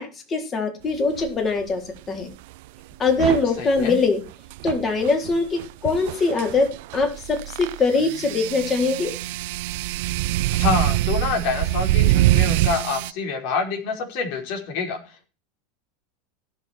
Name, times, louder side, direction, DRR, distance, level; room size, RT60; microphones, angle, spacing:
voice 1, 0.0-1.8 2.1-2.3 3.0-4.2 4.6-9.1, left 3 dB, 30° left, 4 dB, 4.1 m, -22 dB
sound 1, 1.2-1.4 3.1-13.1, right 17 dB, 70° right, 0.5 m, -24 dB
voice 2, 3.6-4.0 10.5-15.3, left 4 dB, 65° left, 4 dB, 4.8 m, -27 dB
16.5 x 6.8 x 4.5 m, 0.32 s
supercardioid pair, 120°, 0 cm